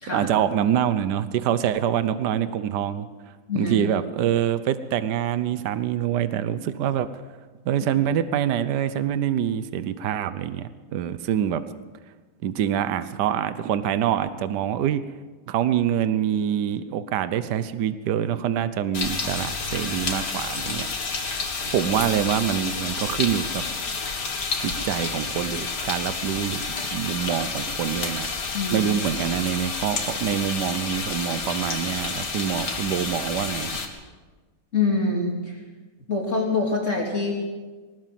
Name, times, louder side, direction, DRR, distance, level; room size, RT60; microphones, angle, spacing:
voice 1, 0.1-3.1 3.5-7.2 7.6-11.7 12.4-15.0 15.5-20.9 21.6-23.6 24.6-26.6 26.9-28.3 28.7-33.8, right 10 dB, 75° right, 13 dB, 1.4 m, -25 dB
sound 1, 18.9-33.9, left 4 dB, 75° left, 2.6 m, -30 dB
voice 2, 28.5-28.9 34.7-35.6 36.1-37.3, left 3 dB, 45° left, 0 dB, 3.1 m, -25 dB
20.5 x 19.0 x 7.6 m, 1.4 s
omnidirectional pair, 1.8 m